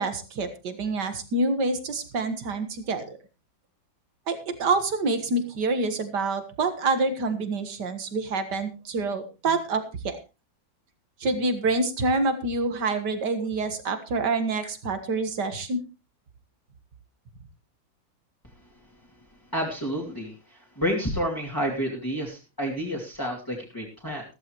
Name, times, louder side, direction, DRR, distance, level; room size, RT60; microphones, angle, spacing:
voice 1, 0.0-3.2 4.3-10.2 11.2-15.8, right 3 dB, 60° right, 9 dB, 2.2 m, -27 dB
voice 2, 19.5-24.2, equal, 10° left, -3 dB, 2.7 m, -30 dB
14.5 x 14.0 x 3.1 m, 0.28 s
omnidirectional pair, 2.1 m